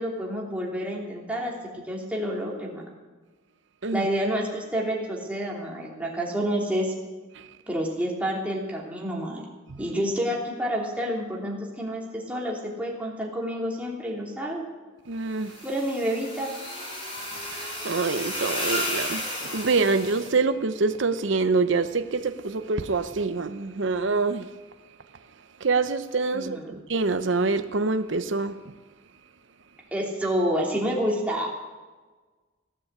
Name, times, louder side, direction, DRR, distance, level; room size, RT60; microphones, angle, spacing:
voice 1, 0.0-2.8 3.9-6.9 7.7-9.5 9.8-14.6 15.6-16.5 26.3-26.8 29.9-31.5, equal, 5° right, 3.0 m, -29 dB
voice 2, 15.1-15.5 17.4-24.5 25.6-28.7, right 4 dB, 65° right, 0.8 m, -26 dB
sound 1, 15.4-20.3, left 1 dB, 30° left, 4.0 m, -33 dB
17.5 x 9.8 x 8.2 m
head